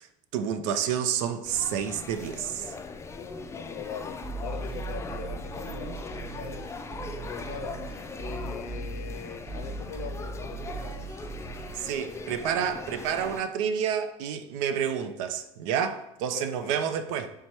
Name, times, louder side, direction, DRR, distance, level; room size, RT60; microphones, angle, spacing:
voice 1, 0.3-2.7 11.7-17.3, right 8 dB, 80° right, 0.4 m, -29 dB
sound 1, 1.4-13.4, left 4 dB, 15° left, 0.3 m, -40 dB
voice 2, 3.1-6.7 7.3-7.9 8.2-11.1 16.3-17.0, left 6 dB, 60° left, 0.6 m, -41 dB
sound 2, 4.2-11.9, right 4 dB, 35° right, 0.6 m, -39 dB
3.3 x 2.8 x 4.5 m
supercardioid pair, 90°, 16 cm